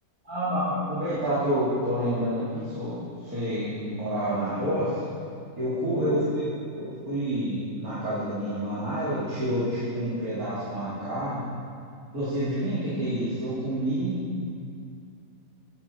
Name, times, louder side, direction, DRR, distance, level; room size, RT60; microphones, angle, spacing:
voice 1, 0.2-3.0 3.2-4.9 5.6-6.4 6.8-11.4 12.1-14.1, equal, 90° right, -11 dB, 3.6 m, -28 dB
21.0 x 10.5 x 4.7 m, 2.4 s
omnidirectional pair, 1.5 m